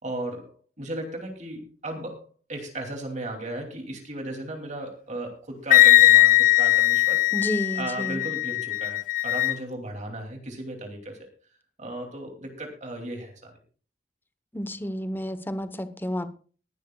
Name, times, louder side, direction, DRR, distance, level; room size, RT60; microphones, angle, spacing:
voice 1, 0.0-2.2 2.5-7.3 7.7-11.3 11.8-13.5, right 1 dB, 45° right, 3 dB, 2.7 m, -36 dB
Wind instrument woodwind instrument, 5.7-9.6, left 17 dB, 50° left, 0.6 m, -19 dB
voice 2, 7.3-8.2 14.5-16.3, equal, 10° left, 11 dB, 0.9 m, -31 dB
19.5 x 12.0 x 2.3 m, 0.39 s
head